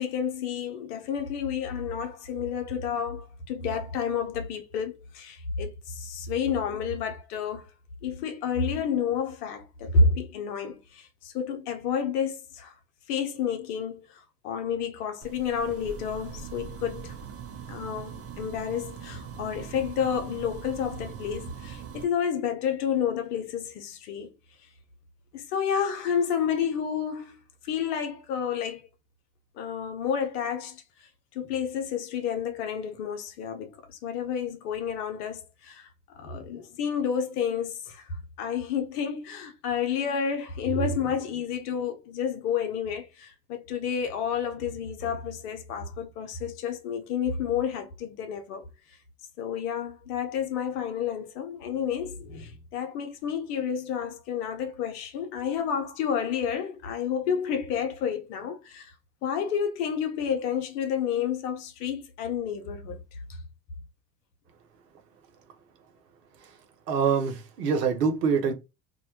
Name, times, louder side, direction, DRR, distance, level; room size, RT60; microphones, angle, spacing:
voice 1, 0.0-7.6 8.0-12.7 13.1-17.2 17.7-24.3 25.3-28.8 29.6-30.8 31.3-35.9 36.2-48.7 49.4-58.9 59.2-63.0, left 6 dB, 75° left, 0.7 m, -30 dB
sound 1, 15.2-22.0, right 7 dB, 30° right, 0.5 m, -41 dB
voice 2, 66.9-68.5, right 6 dB, 90° right, 0.6 m, -25 dB
2.1 x 2.1 x 2.8 m
hypercardioid pair, 60°, 46 cm